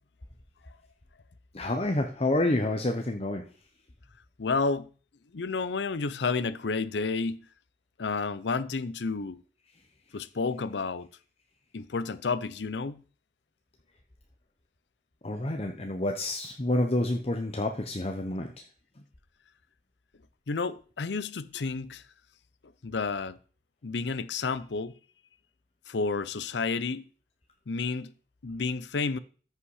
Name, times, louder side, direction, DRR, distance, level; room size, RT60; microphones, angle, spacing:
voice 1, 1.5-3.4 15.2-18.6, left 1 dB, 35° left, 0.9 m, -28 dB
voice 2, 4.4-4.9 5.3-7.5 8.0-9.4 10.1-11.1 11.7-13.0 20.5-22.0 22.8-23.4 23.8-24.9 25.9-27.0 27.7-28.1 28.4-29.2, left 4 dB, 75° left, 0.6 m, -30 dB
14.0 x 5.5 x 4.9 m
head